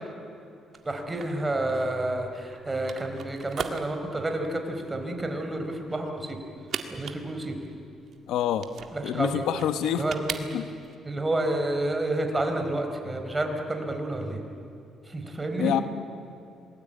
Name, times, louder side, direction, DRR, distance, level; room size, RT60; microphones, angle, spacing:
sound 1, 0.7-11.0, right 7 dB, 60° right, 2.0 m, -40 dB
voice 1, 0.8-6.4 6.9-7.6 8.9-9.5 10.0-10.5 11.0-14.4 15.1-15.8, right 1 dB, 20° right, 4 dB, 4.4 m, -29 dB
voice 2, 8.3-8.7 9.0-10.0 10.5-10.6 15.6-15.8, left 10 dB, 90° left, 10 dB, 1.2 m, -26 dB
27.0 x 20.5 x 9.1 m, 2.6 s
cardioid pair, 90°, 0 cm